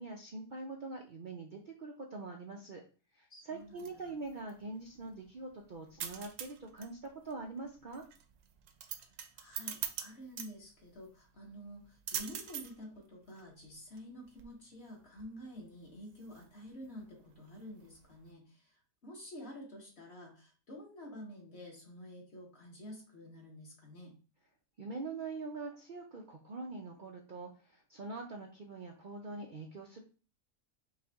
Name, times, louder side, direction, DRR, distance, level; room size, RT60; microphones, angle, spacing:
voice 1, 0.0-2.8 3.2-8.0 24.8-30.0, right 3 dB, 85° right, 1 dB, 0.4 m, -44 dB
voice 2, 3.3-4.1 9.3-24.1, equal, 45° left, -1 dB, 1.5 m, -50 dB
sound 1, 3.5-18.3, right 8 dB, 65° right, 0.9 m, -46 dB
5.5 x 2.5 x 3.4 m, 0.36 s
omnidirectional pair, 1.6 m